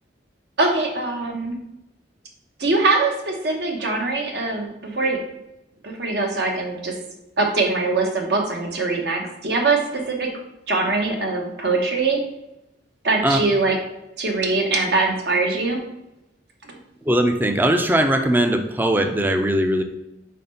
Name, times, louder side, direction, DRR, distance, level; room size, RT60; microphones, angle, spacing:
voice 1, 0.6-1.6 2.6-5.2 5.8-7.0 7.4-10.3 10.7-12.2 13.0-13.8 14.2-15.8 16.7-16.8, right 3 dB, 65° right, 2 dB, 1.1 m, -22 dB
voice 2, 17.1-19.8, right 1 dB, 10° right, 6 dB, 0.4 m, -19 dB
4.2 x 4.2 x 5.4 m, 0.90 s
head